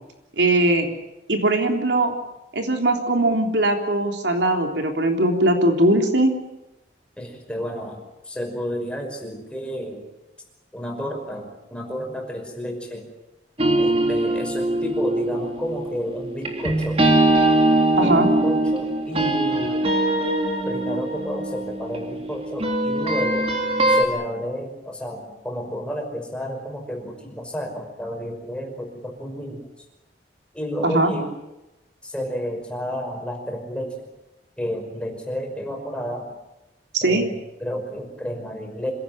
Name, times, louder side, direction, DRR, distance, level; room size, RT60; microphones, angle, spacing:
voice 1, 0.4-0.9 1.3-2.1 2.5-6.3 18.0-18.3 30.8-31.1 36.9-37.3, right 1 dB, 85° right, 3 dB, 3.5 m, -20 dB
voice 2, 7.2-10.0 10.7-13.1 13.8-17.0 18.0-19.9 20.7-23.5 23.9-29.6 30.5-31.3 32.0-34.1 34.6-36.3 37.0-37.3 37.6-38.9, equal, 5° left, 1 dB, 5.6 m, -31 dB
sound 1, 13.6-24.0, right 1 dB, 35° right, 3.3 m, -22 dB
26.5 x 17.5 x 8.9 m, 0.96 s
head